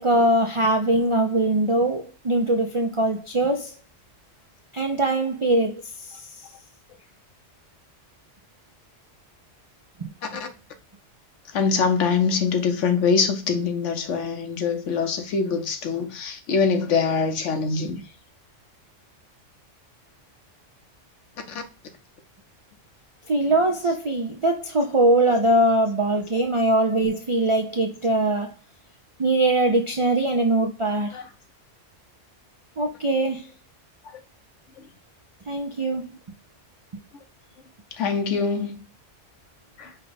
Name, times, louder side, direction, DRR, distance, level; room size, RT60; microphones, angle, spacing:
voice 1, 0.0-3.7 4.7-6.3 10.0-10.1 23.3-28.5 29.2-31.2 32.8-33.5 35.5-36.0, right 1 dB, 55° right, 0.3 m, -22 dB
voice 2, 11.5-18.0 21.5-21.6 31.1-31.3 34.1-34.2 37.9-38.8 39.8-39.9, left 5 dB, 75° left, 1.1 m, -24 dB
5.4 x 2.2 x 3.9 m
omnidirectional pair, 1.3 m